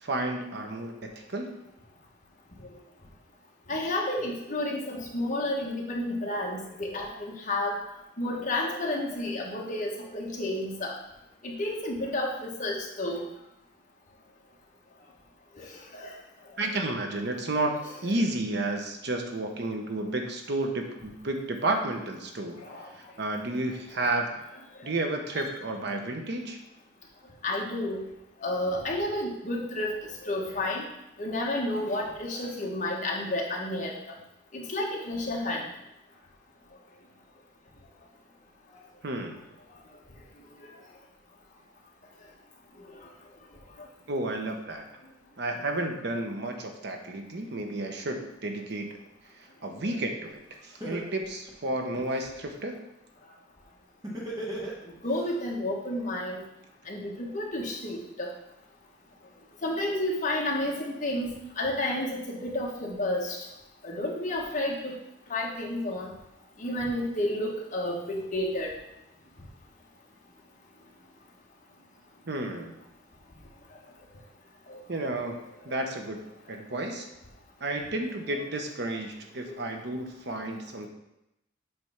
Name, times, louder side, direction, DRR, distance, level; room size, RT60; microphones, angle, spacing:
voice 1, 0.0-1.5 16.6-17.7 18.0-22.6 22.9-24.3 24.8-26.6 39.0-39.4 44.1-44.9 45.4-49.0 49.6-52.8 72.3-72.8 74.9-75.4 75.6-76.2 76.5-77.1 77.6-80.9, right 2 dB, 60° right, 4 dB, 1.0 m, -31 dB
voice 2, 3.7-7.8 8.2-10.9 11.4-13.2 15.6-16.1 22.6-22.9 24.0-24.1 27.4-28.1 28.4-30.9 31.2-34.1 34.5-35.7 55.0-56.4 56.9-58.3 59.6-63.4 63.8-64.9 65.3-66.1 66.6-68.7 74.7-74.8 79.5-79.6, left 1 dB, 45° left, -2 dB, 1.4 m, -31 dB
Laughter, 50.3-50.4 50.8-52.3 54.0-55.2, right 1 dB, 20° right, 1.7 m, -36 dB
7.8 x 3.4 x 5.8 m, 0.87 s
head